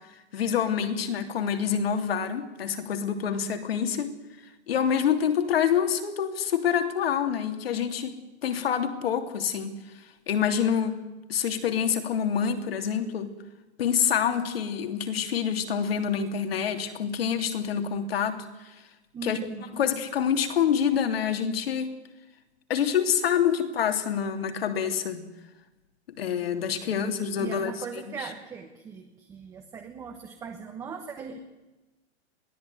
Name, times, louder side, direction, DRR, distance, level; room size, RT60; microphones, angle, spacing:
voice 1, 0.3-4.2 4.7-8.2 8.4-9.8 10.3-11.0 11.3-13.3 13.8-18.7 19.2-19.4 19.7-21.9 22.7-25.3 26.2-27.7, left 8 dB, 60° left, 7 dB, 3.2 m, -26 dB
voice 2, 19.1-19.9 26.9-27.1 27.4-31.4, right 5 dB, 10° right, 4 dB, 1.2 m, -39 dB
22.0 x 16.5 x 9.5 m, 1.1 s
hypercardioid pair, 165°, 33 cm